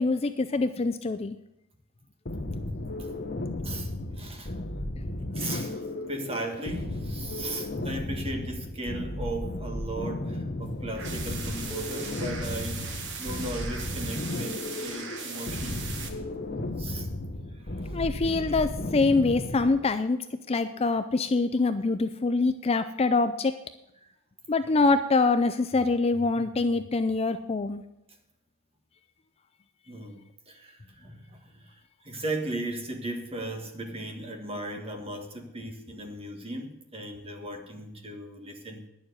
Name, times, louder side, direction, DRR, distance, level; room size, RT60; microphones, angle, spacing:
voice 1, 0.0-1.4 17.9-20.2 20.5-23.5 24.5-27.8, left 3 dB, 25° left, 10 dB, 0.4 m, -25 dB
sound 1, 2.3-19.9, left 1 dB, 45° left, 1.2 m, -34 dB
voice 2, 2.7-3.1 3.6-4.5 5.3-15.9 16.8-17.1 17.5-18.0 29.9-38.8, right 1 dB, 25° right, 3 dB, 1.6 m, -37 dB
sound 2, 10.9-16.1, right 5 dB, 55° right, 1.4 m, -39 dB
10.5 x 7.1 x 8.0 m, 0.85 s
head